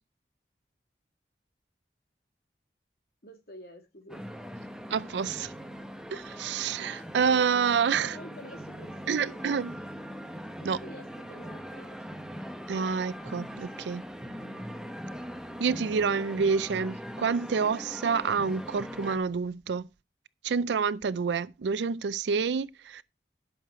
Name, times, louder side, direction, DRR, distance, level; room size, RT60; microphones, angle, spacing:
voice 1, 3.2-4.3 8.1-9.4 10.6-12.0, equal, 60° left, 2.4 m, -48 dB
sound 1, 4.1-19.2, equal, 5° right, 0.8 m, -41 dB
voice 2, 4.9-5.5 6.1-8.2 9.1-9.7 10.6-10.8 12.7-14.1 15.6-19.9 20.4-23.0, right 6 dB, 85° right, 0.4 m, -28 dB
11.5 x 6.5 x 4.5 m
head